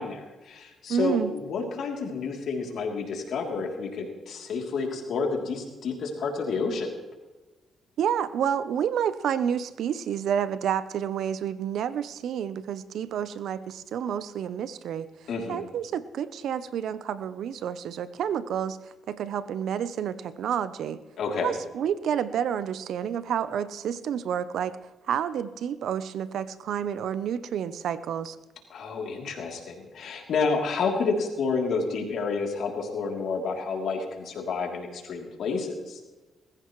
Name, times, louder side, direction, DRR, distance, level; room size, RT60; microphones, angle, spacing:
voice 1, 0.0-6.9 15.3-15.7 21.2-21.6 28.7-36.0, left 4 dB, 70° left, 1 dB, 3.1 m, -30 dB
voice 2, 0.9-1.3 8.0-15.1 15.5-18.8 19.1-21.0 21.4-24.8 25.1-28.4, right 8 dB, 75° right, 14 dB, 0.7 m, -29 dB
20.0 x 15.0 x 3.2 m, 1.2 s
cardioid pair, 75°, 0 cm